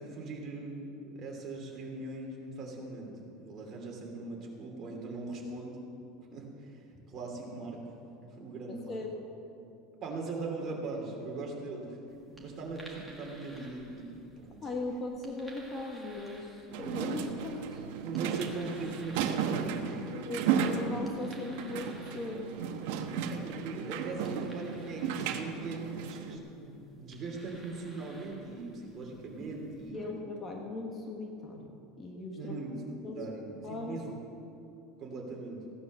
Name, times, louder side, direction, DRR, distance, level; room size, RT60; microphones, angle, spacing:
voice 1, 0.0-5.8 6.3-6.8 7.1-7.9 8.2-9.0 10.0-12.0 12.4-14.1 14.4-14.6 18.0-20.3 23.3-30.0 32.4-34.2 35.0-35.6, right 3 dB, 30° right, 0 dB, 2.8 m, -40 dB
voice 2, 8.7-9.2 14.6-17.8 20.1-22.5 29.9-32.5 33.0-33.2 33.6-34.0, left 2 dB, 20° left, 1 dB, 1.2 m, -39 dB
sound 1, 12.1-29.9, right 1 dB, ahead, 2.1 m, -57 dB
sound 2, 16.7-26.4, right 7 dB, 70° right, 1.1 m, -34 dB
16.0 x 9.7 x 6.7 m, 2.7 s
supercardioid pair, 160°, 0 cm